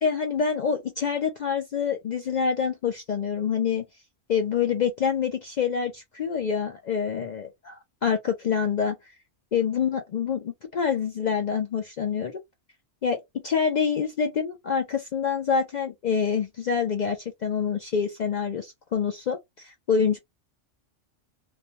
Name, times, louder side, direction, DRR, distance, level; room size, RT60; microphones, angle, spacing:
voice 1, 0.0-3.9 4.3-9.0 9.5-12.4 13.0-20.2, left 6 dB, 65° left, 0.4 m, -26 dB
2.5 x 2.2 x 2.7 m
omnidirectional pair, 1.3 m